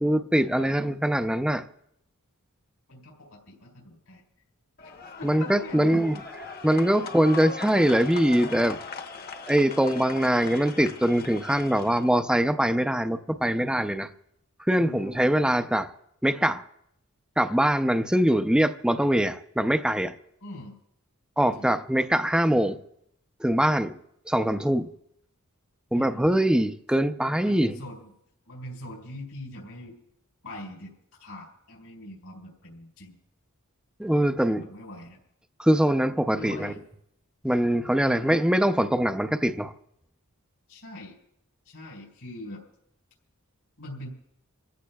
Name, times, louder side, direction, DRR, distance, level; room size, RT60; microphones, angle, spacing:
voice 1, 0.0-1.7 5.2-6.1 6.6-8.8 9.5-14.1 14.7-15.9 16.2-16.6 17.4-20.1 21.4-22.8 23.4-24.0 24.3-24.9 25.9-27.8 34.0-34.6 35.6-36.7 37.4-39.7, right 1 dB, 5° right, 0.5 m, -23 dB
voice 2, 0.5-1.0 2.9-4.2 5.2-6.0 6.3-6.4 14.8-15.1 20.4-20.7 21.4-21.7 25.9-26.2 27.4-28.1 28.5-30.0 30.4-30.9 31.2-33.2 34.5-35.2 36.3-36.8 38.0-38.4 40.7-41.2 41.7-42.6 43.8-44.1, left 1 dB, 85° left, 3.8 m, -42 dB
sound 1, 4.8-12.2, left 4 dB, 45° left, 1.0 m, -40 dB
28.5 x 15.0 x 2.3 m
head